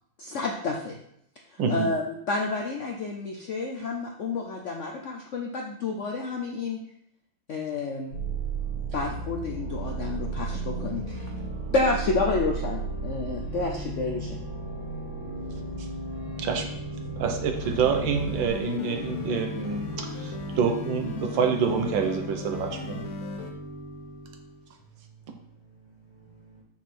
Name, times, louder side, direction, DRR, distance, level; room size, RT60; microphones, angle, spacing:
voice 1, 0.2-1.0 1.5-6.8 7.5-8.2 8.9-11.3 11.7-14.4, left 3 dB, 90° left, 1 dB, 0.6 m, -30 dB
voice 2, 1.6-1.9 15.8-15.9 16.4-16.7 17.2-23.0, right 6 dB, 70° right, 5 dB, 1.5 m, -27 dB
sound 1, 8.1-18.5, right 4 dB, 55° right, 1.9 m, -34 dB
Organ / Church bell, 10.5-24.7, right 1 dB, 10° right, 1.5 m, -40 dB
sound 2, 17.5-23.5, left 5 dB, 60° left, 1.0 m, -38 dB
voice 3, 24.8-26.6, right 5 dB, 20° left, -2 dB, 0.8 m, -55 dB
6.3 x 6.2 x 4.3 m, 0.74 s
omnidirectional pair, 2.3 m